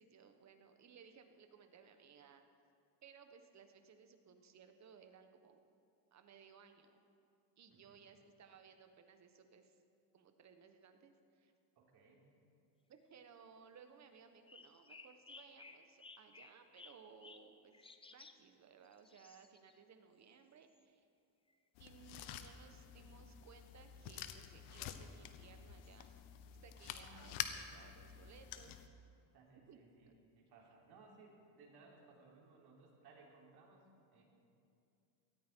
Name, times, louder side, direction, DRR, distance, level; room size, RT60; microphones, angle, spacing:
voice 1, 0.0-2.4 3.0-5.6 6.1-7.1 7.6-9.8 10.1-11.5 12.9-21.1 21.8-26.2 26.6-28.8 29.7-29.8 30.1-30.2, right 6 dB, 35° right, 7 dB, 1.3 m, -61 dB
voice 2, 7.7-8.0 11.8-12.3 26.8-27.5 29.3-30.1 30.4-34.2, right 3 dB, 55° right, -2 dB, 3.6 m, -63 dB
sound 1, 14.2-18.4 18.8-19.8 20.7-20.8 21.5-21.6 21.9-22.1 24.8-24.9 25.8-26.0, left 3 dB, 10° left, 0.6 m, -59 dB
sound 2, 21.7-28.9, left 10 dB, 75° left, 1.1 m, -48 dB
18.0 x 13.5 x 4.6 m, 2.5 s
cardioid pair, 115°, 47 cm